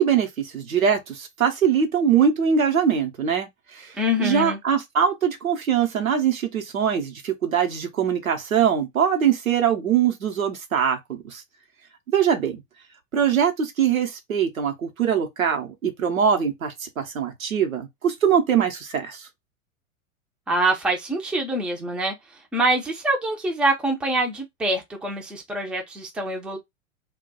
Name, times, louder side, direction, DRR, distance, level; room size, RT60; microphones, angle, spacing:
voice 1, 0.0-3.9 4.2-11.4 12.1-12.6 13.1-19.3, right 8 dB, 80° right, 0.9 m, -22 dB
voice 2, 4.0-4.6 20.5-26.6, right 1 dB, 5° right, 0.4 m, -25 dB
2.3 x 2.2 x 3.8 m
figure-of-eight pair, 90°, 41 cm